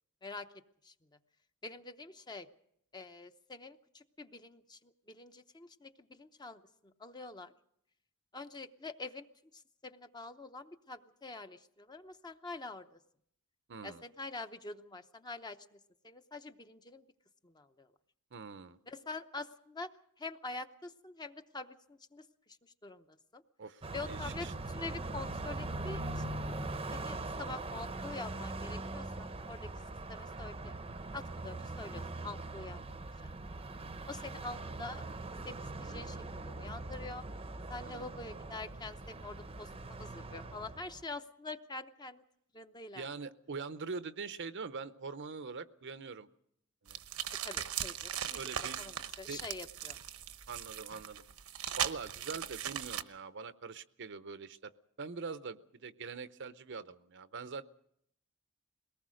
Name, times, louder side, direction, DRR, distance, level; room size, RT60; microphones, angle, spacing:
voice 1, 1.6-2.5 2.9-7.5 8.3-9.3 9.5-13.0 13.8-15.8 16.0-17.1 17.4-17.9 18.9-19.9 20.2-23.4 23.9-26.3 26.9-29.7 30.1-30.7 31.1-33.3 34.1-35.0 35.5-37.2 37.7-42.2 42.5-43.1 47.4-48.4 48.8-50.0, left 3 dB, 20° left, 8 dB, 0.8 m, -46 dB
voice 2, 13.7-14.0 18.3-18.8 23.6-24.5 37.8-38.1 42.9-46.3 46.8-47.0 48.3-48.8 49.3-49.4 50.5-51.2 51.8-54.7 55.0-57.7, right 4 dB, 55° right, 13 dB, 0.7 m, -43 dB
Car passing by, 23.8-41.0, right 2 dB, 25° right, 0.8 m, -41 dB
sound 1, 46.9-53.0, right 10 dB, 80° right, 1.0 m, -39 dB
21.5 x 19.0 x 6.4 m, 0.71 s
head